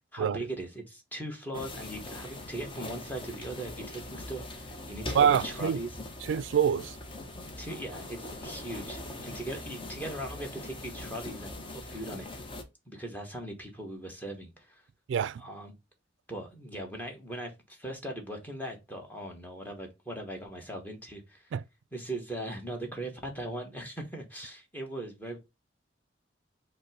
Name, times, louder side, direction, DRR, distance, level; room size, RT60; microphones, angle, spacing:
voice 1, 0.1-6.0 7.6-12.4 12.9-14.8 15.4-15.7 16.3-21.5 21.9-25.4, right 1 dB, 10° left, 1.1 m, -39 dB
sound 1, 1.5-12.6, left 1 dB, 30° left, 0.7 m, -41 dB
voice 2, 5.1-5.8 6.3-7.0 15.1-15.4 21.5-21.6, right 8 dB, 80° right, 0.3 m, -25 dB
5.2 x 2.1 x 4.8 m
head